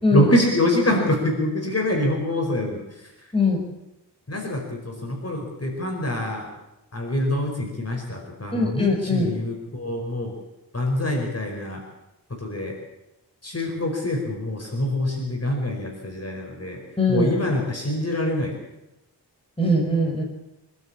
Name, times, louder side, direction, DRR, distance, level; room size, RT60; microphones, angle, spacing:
voice 1, 0.1-2.8 4.3-6.5 6.9-10.3 10.7-11.8 12.4-12.7 13.4-16.8 17.1-18.5, left 1 dB, 35° left, 1 dB, 4.7 m, -25 dB
voice 2, 8.5-9.3 17.0-17.3 19.6-20.2, left 2 dB, 15° left, 0 dB, 5.2 m, -21 dB
25.0 x 13.0 x 8.6 m, 0.94 s
wide cardioid pair, 110°, 41 cm